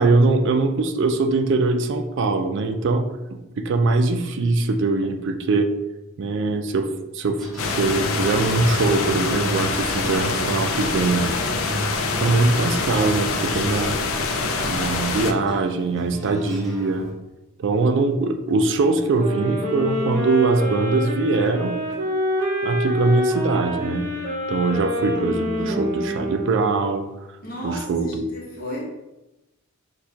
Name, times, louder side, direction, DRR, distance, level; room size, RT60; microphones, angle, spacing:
voice 1, 0.0-3.0 3.3-5.7 6.2-6.9 7.1-7.4 7.7-11.3 12.1-14.0 14.6-17.1 17.6-21.8 22.6-24.1 24.5-27.0 27.6-28.3, right 3 dB, 55° right, 6 dB, 0.4 m, -22 dB
sound 1, 7.4-17.1, equal, ahead, 0.9 m, -34 dB
sound 2, 7.6-15.3, left 4 dB, 65° left, 0.4 m, -25 dB
sound 3, 19.2-27.1, equal, 35° right, 0.8 m, -27 dB
voice 2, 25.6-26.1 27.4-28.8, equal, 45° left, -4 dB, 1.2 m, -33 dB
6.2 x 2.3 x 2.8 m, 0.97 s
head